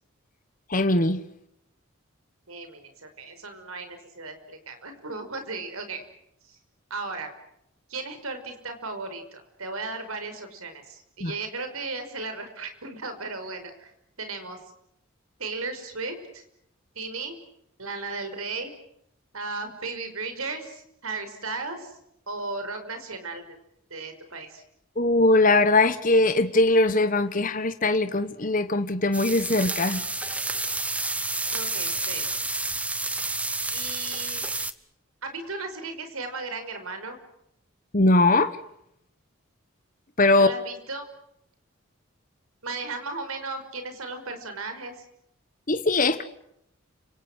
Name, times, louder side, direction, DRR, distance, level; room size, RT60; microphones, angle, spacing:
voice 1, 0.7-1.2 11.2-11.3 25.0-30.0 37.9-38.6 40.2-40.5 45.7-46.2, left 2 dB, 40° left, 1.2 m, -21 dB
voice 2, 2.5-6.0 6.4-6.6 6.9-7.3 7.9-13.9 14.2-14.6 15.4-16.4 17.0-17.4 17.8-18.7 19.3-21.9 22.3-23.4 23.9-24.6 31.5-32.3 33.7-34.5 35.2-37.2 40.4-41.1 42.6-45.0, right 3 dB, 90° right, 5.6 m, -35 dB
sound 1, 29.1-34.7, right 2 dB, 5° right, 0.9 m, -30 dB
30.0 x 26.5 x 6.4 m
head